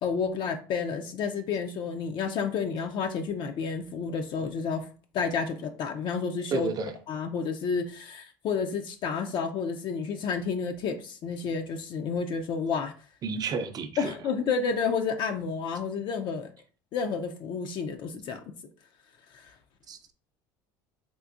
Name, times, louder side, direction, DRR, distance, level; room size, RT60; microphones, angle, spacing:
voice 1, 0.0-4.9 5.1-6.7 7.1-12.9 14.0-16.5 16.9-18.5 19.3-19.5, left 5 dB, 50° left, 6 dB, 0.4 m, -30 dB
voice 2, 6.5-6.9 13.2-14.1 19.9-20.0, right 4 dB, 40° right, 8 dB, 0.5 m, -31 dB
3.7 x 2.5 x 2.4 m, 0.40 s
supercardioid pair, 95°, 10 cm